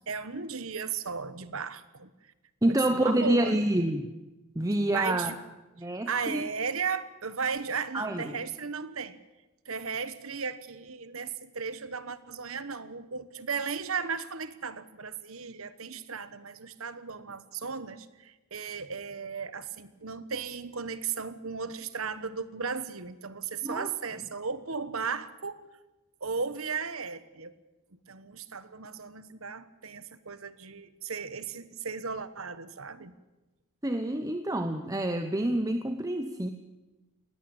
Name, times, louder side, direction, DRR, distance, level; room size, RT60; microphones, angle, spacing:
voice 1, 0.0-2.1 2.7-3.6 4.9-5.4 5.8-9.2 9.7-25.7 26.2-27.5 28.1-33.1, right 5 dB, 65° right, 14 dB, 1.2 m, -35 dB
voice 2, 2.6-4.1 4.5-5.3 5.8-6.5 7.9-8.4 23.6-23.9 33.8-36.5, right 1 dB, 15° right, 7 dB, 0.9 m, -27 dB
20.0 x 17.5 x 8.8 m, 1.1 s
head